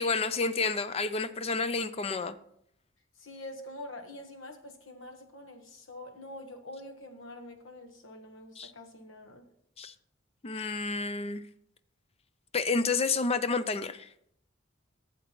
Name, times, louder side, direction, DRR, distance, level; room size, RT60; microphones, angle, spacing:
voice 1, 0.0-2.3 8.6-8.7 9.8-9.9 10.4-11.4 12.5-14.1, left 4 dB, 30° left, 12 dB, 0.5 m, -30 dB
voice 2, 3.2-9.4, left 1 dB, 75° left, 4 dB, 1.3 m, -45 dB
12.0 x 7.4 x 3.0 m, 0.71 s
head